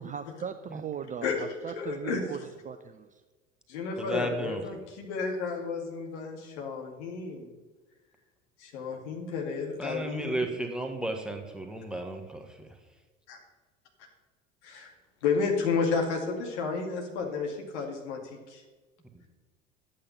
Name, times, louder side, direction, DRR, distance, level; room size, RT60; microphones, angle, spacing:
voice 1, 0.0-3.2, right 8 dB, 20° right, 9 dB, 0.5 m, -39 dB
voice 2, 1.2-2.2 3.7-7.5 8.6-10.4 14.6-14.9 15.2-18.2 18.5-18.6, left 5 dB, 60° left, 2 dB, 2.3 m, -31 dB
voice 3, 4.0-4.6 9.8-12.7, right 1 dB, ahead, 2 dB, 1.5 m, -34 dB
11.0 x 8.6 x 5.7 m, 1.3 s
figure-of-eight pair, 70°, 38 cm